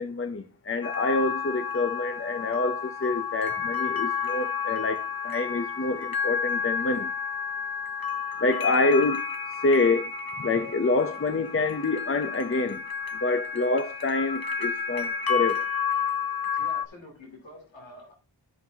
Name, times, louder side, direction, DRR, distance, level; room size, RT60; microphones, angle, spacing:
voice 1, 0.0-7.1 8.4-9.2 9.5-10.1 10.4-12.8 13.2-15.6, left 3 dB, 30° left, 0.6 m, -27 dB
sound 1, 0.8-16.8, left 6 dB, 50° left, 1.1 m, -31 dB
voice 2, 16.5-18.1, left 1 dB, 90° left, 2.8 m, -47 dB
13.0 x 5.5 x 2.8 m
wide cardioid pair, 40°, 44 cm